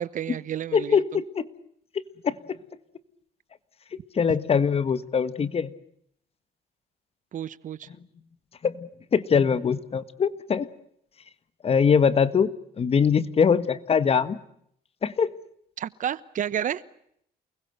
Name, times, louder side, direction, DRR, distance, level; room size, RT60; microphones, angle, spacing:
voice 1, 0.0-1.2 7.3-7.9 15.8-16.8, right 9 dB, 50° right, 18 dB, 1.2 m, -31 dB
voice 2, 0.7-1.5 2.2-2.4 4.2-5.7 8.6-10.7 11.6-12.5 12.8-14.4 15.0-15.3, left 6 dB, 35° left, 14 dB, 1.6 m, -22 dB
29.0 x 21.0 x 7.9 m, 0.71 s
cardioid pair, 110°, 17 cm